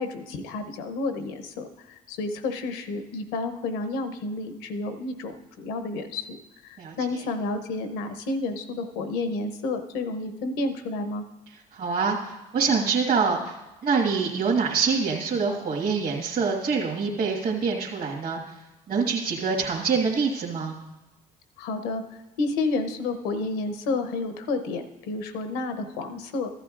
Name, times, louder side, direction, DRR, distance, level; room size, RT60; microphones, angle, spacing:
voice 1, 0.0-6.4 6.6-11.2 21.6-22.0 22.4-26.5, left 3 dB, 90° left, 9 dB, 0.9 m, -30 dB
voice 2, 11.7-13.6 13.8-18.4 18.9-20.8, right 5 dB, 60° right, -3 dB, 1.7 m, -25 dB
15.0 x 11.0 x 2.5 m, 1.1 s
supercardioid pair, 70°, 18 cm